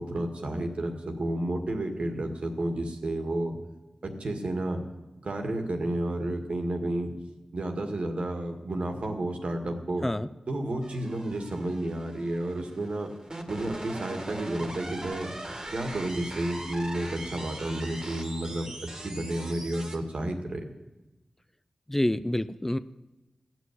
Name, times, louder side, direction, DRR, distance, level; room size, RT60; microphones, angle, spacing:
voice 1, 0.0-3.6 4.0-4.8 5.2-7.1 7.5-10.1 10.5-13.1 13.5-15.3 15.7-18.8 19.0-20.6, right 1 dB, 70° right, 3 dB, 2.0 m, -31 dB
sound 1, 10.8-20.0, right 1 dB, 35° right, 1.9 m, -41 dB
voice 2, 21.9-22.8, left 1 dB, 15° left, 13 dB, 0.5 m, -27 dB
15.0 x 6.2 x 9.4 m, 1.0 s
cardioid pair, 55°, 2 cm